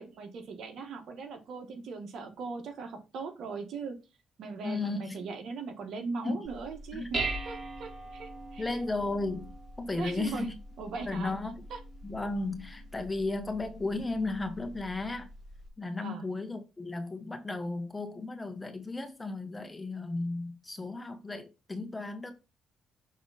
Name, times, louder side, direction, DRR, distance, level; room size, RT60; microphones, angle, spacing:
voice 1, 0.0-4.0 4.4-8.6 10.0-10.5 10.8-11.3 11.7-11.8 16.0-16.2, right 4 dB, 70° right, 1.5 m, -39 dB
voice 2, 4.6-5.2 6.2-6.4 6.9-7.1 8.6-9.5 9.8-10.6 11.0-11.6 12.0-15.3 15.8-22.3, left 2 dB, 20° left, 1.3 m, -34 dB
Dishes pots and pans, 6.4-15.7, right 2 dB, 30° right, 2.8 m, -42 dB
6.4 x 3.6 x 4.1 m
cardioid pair, 90°, 0 cm